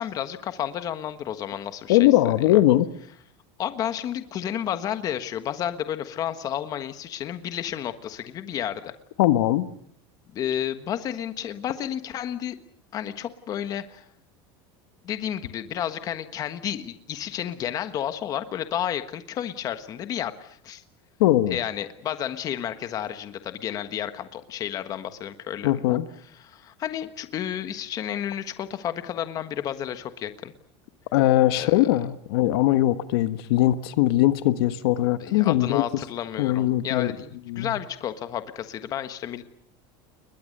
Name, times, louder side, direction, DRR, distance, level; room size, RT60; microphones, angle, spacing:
voice 1, 0.0-2.6 3.6-8.9 10.3-12.6 12.9-14.0 15.0-20.8 21.5-26.0 26.4-30.5 31.6-31.9 35.2-39.4, left 10 dB, 30° left, 10 dB, 1.4 m, -31 dB
voice 2, 1.9-2.9 9.2-9.7 21.2-21.6 25.6-26.0 31.1-35.8 36.4-37.1 37.5-37.7, left 15 dB, 75° left, 11 dB, 1.4 m, -20 dB
29.5 x 22.0 x 6.7 m, 0.64 s
cardioid pair, 170°, 13 cm